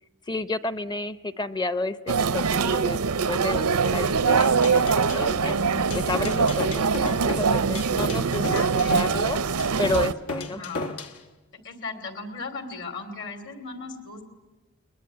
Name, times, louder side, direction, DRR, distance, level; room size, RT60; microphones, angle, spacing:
voice 1, 0.3-5.6 5.9-8.5 8.7-9.4 9.8-11.0, left 2 dB, 20° left, 14 dB, 0.7 m, -31 dB
sound 1, 2.1-10.1, right 5 dB, 90° right, 0.7 m, -23 dB
sound 2, 4.3-11.2, left 3 dB, 75° left, 1.4 m, -35 dB
voice 2, 5.5-6.7 8.2-9.1 10.5-10.9 11.6-14.2, left 3 dB, 55° left, 8 dB, 2.9 m, -38 dB
22.5 x 21.0 x 9.5 m, 1.1 s
head